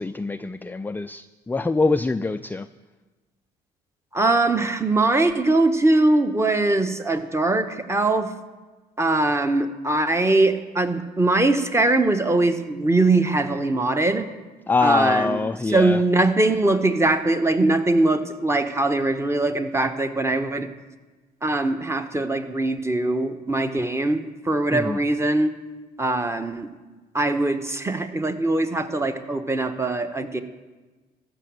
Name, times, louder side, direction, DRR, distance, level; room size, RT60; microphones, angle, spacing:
voice 1, 0.0-2.7 14.7-16.0 24.7-25.0, left 3 dB, 10° left, 12 dB, 0.4 m, -24 dB
voice 2, 4.1-8.3 9.0-14.3 14.8-15.4 15.7-20.7 21.4-25.5 26.0-26.7 27.1-30.4, right 2 dB, 15° right, 8 dB, 1.2 m, -21 dB
14.0 x 6.2 x 7.7 m, 1.3 s
hypercardioid pair, 60°, 20 cm